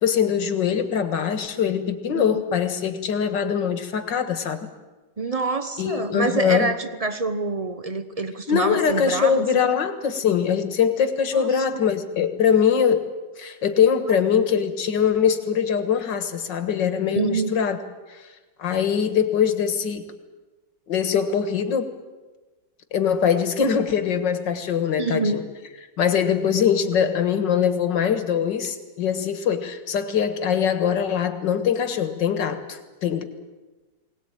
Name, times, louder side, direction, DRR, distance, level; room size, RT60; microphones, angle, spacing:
voice 1, 0.0-4.7 5.8-6.7 8.5-13.1 13.4-17.8 18.1-18.2 18.6-20.0 20.9-21.9 22.9-25.4 26.0-33.2, left 7 dB, 70° left, 9 dB, 2.2 m, -22 dB
voice 2, 2.1-2.4 5.2-9.7 11.3-11.8 17.2-17.5 25.0-25.4, right 3 dB, 30° right, 10 dB, 0.6 m, -26 dB
22.0 x 18.5 x 8.9 m, 1.2 s
omnidirectional pair, 2.0 m